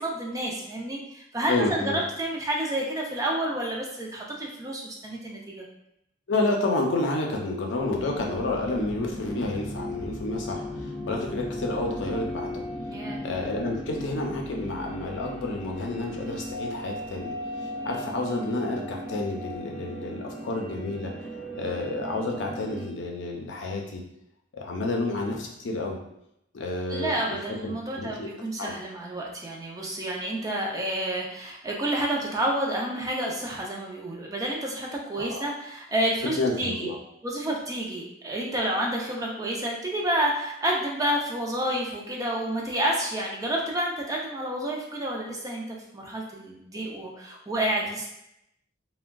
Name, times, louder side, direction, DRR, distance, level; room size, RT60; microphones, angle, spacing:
voice 1, 0.0-5.6 12.9-13.3 26.9-36.9 37.2-48.1, right 1 dB, 20° right, -2 dB, 0.4 m, -29 dB
voice 2, 1.5-2.0 6.3-12.5 13.2-21.3 21.5-24.0 24.5-26.0 26.5-27.4 27.6-28.3 28.6-28.7 35.2-35.5 36.2-37.0, left 2 dB, 70° left, 1 dB, 0.5 m, -30 dB
sound 1, 7.7-22.9, equal, 5° left, 0.8 m, -36 dB
3.5 x 2.1 x 2.2 m, 0.80 s
head